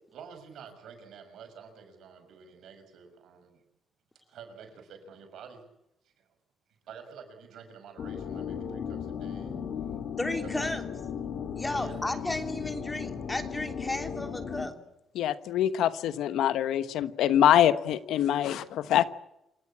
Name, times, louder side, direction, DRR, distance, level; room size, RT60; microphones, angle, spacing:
voice 1, 0.1-3.6 4.3-5.6 6.0-6.3 6.8-9.5 11.7-12.0, right 6 dB, 75° right, 7 dB, 5.9 m, -49 dB
sound 1, 8.0-14.7, left 7 dB, 65° left, 3.1 m, -36 dB
voice 2, 10.2-10.8 11.5-14.7, left 2 dB, 15° left, 7 dB, 3.2 m, -33 dB
voice 3, 15.1-19.0, left 11 dB, 80° left, 13 dB, 1.2 m, -24 dB
28.0 x 17.0 x 8.7 m, 0.89 s
cardioid pair, 90°, 0 cm